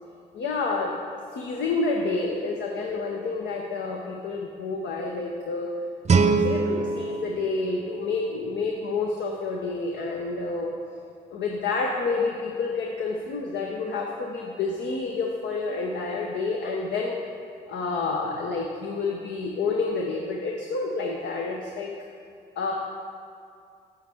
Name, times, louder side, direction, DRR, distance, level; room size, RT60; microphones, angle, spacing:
voice 1, 0.3-1.0 1.3-5.8 6.1-10.7 11.3-17.2 17.7-21.9 22.6-22.7, left 3 dB, 70° left, 0 dB, 0.8 m, -29 dB
Guitar, 6.0-8.8, right 4 dB, 35° right, 0.6 m, -25 dB
8.0 x 7.8 x 3.5 m, 2.4 s
hypercardioid pair, 50°, 19 cm